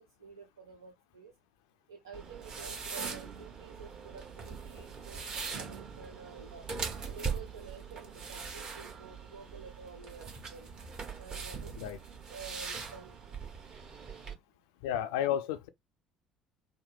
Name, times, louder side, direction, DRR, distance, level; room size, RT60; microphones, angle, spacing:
voice 1, 0.0-1.3 1.9-6.7 7.0-10.7 11.2-11.7 12.3-13.3, right 5 dB, 80° right, 0.4 m, -50 dB
sound 1, 2.1-14.3, right 5 dB, 40° right, 1.1 m, -41 dB
voice 2, 14.8-15.7, left 10 dB, 70° left, 0.4 m, -32 dB
3.9 x 2.1 x 3.3 m
figure-of-eight pair, 55°, 2 cm